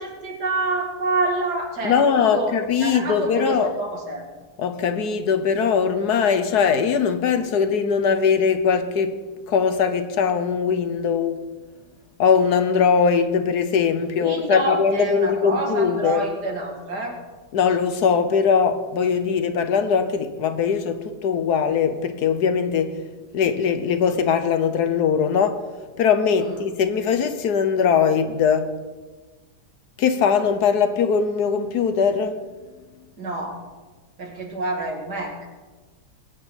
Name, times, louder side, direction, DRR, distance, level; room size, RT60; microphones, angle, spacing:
voice 1, 0.0-2.5 2.8-4.2 14.2-17.1 26.4-26.6 33.2-33.6 34.2-35.5, right 2 dB, 70° right, 2.9 m, -27 dB
voice 2, 1.8-3.7 4.6-9.2 9.5-11.4 12.2-16.2 17.5-23.0 23.3-25.7 26.0-28.7 30.0-32.4, left 6 dB, 70° left, 1.4 m, -21 dB
21.0 x 9.2 x 4.1 m
omnidirectional pair, 1.8 m